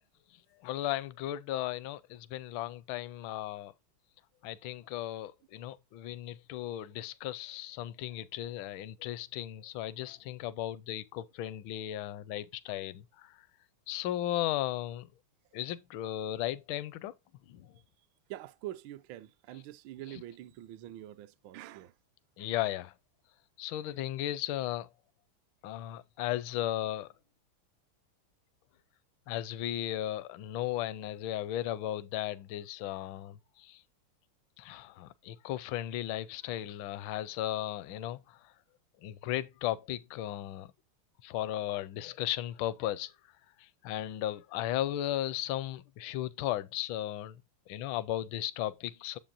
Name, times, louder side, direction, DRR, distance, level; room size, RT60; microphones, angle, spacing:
voice 1, 0.6-3.7 4.4-13.4 13.9-15.1 15.5-17.1 17.5-17.7 20.1-20.2 22.4-22.9 23.6-24.9 25.6-27.1 29.3-33.8 34.6-38.4 39.0-40.7 41.2-43.1 43.6-47.4 47.7-49.2, left 13 dB, 75° left, 1.3 m, -36 dB
voice 2, 18.3-21.9, right 14 dB, 75° right, 1.2 m, -45 dB
8.8 x 7.2 x 2.5 m
omnidirectional pair, 2.4 m